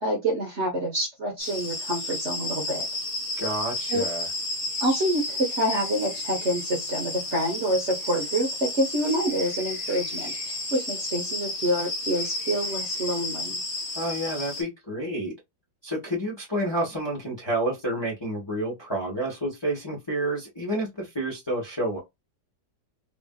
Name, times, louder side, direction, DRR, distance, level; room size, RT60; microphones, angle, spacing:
voice 1, 0.0-2.8 3.9-4.0 4.8-13.6, right 1 dB, 50° right, 0.9 m, -27 dB
sound 1, 1.4-14.6, left 2 dB, 45° left, 1.2 m, -32 dB
voice 2, 3.4-4.2 14.0-15.3 15.8-22.0, right 1 dB, 20° left, 0.8 m, -29 dB
3.3 x 2.4 x 2.2 m
omnidirectional pair, 2.0 m